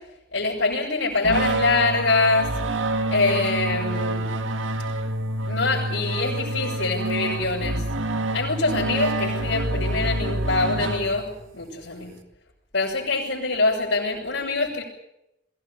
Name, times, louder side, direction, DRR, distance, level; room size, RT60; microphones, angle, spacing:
voice 1, 0.3-2.5 3.1-4.3 5.4-7.8 8.3-11.3 11.5-12.1 12.7-14.8, left 3 dB, 75° left, -7 dB, 6.2 m, -24 dB
sound 1, 1.2-11.5, right 1 dB, 90° right, 2.1 m, -27 dB
22.5 x 16.0 x 10.0 m, 0.85 s
head